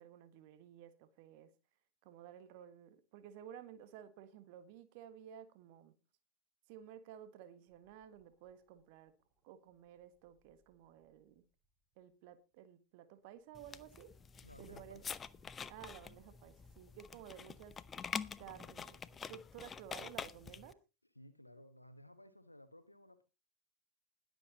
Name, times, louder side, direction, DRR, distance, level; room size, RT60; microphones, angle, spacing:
voice 1, 0.0-1.5 2.0-5.9 6.7-9.1 9.4-11.4 12.0-14.1 14.6-15.0 15.7-17.8 18.4-19.0 19.3-20.8, right 10 dB, 45° right, 1.5 m, -54 dB
sound 1, 7.7-12.6 13.1-16.9, right 4 dB, 30° right, 6.6 m, -78 dB
sound 2, 13.5-20.7, left 6 dB, 20° left, 0.7 m, -47 dB
voice 2, 14.4-15.0 21.1-23.2, left 1 dB, 85° left, 1.1 m, -57 dB
20.5 x 7.9 x 2.9 m
figure-of-eight pair, 90°, 0 cm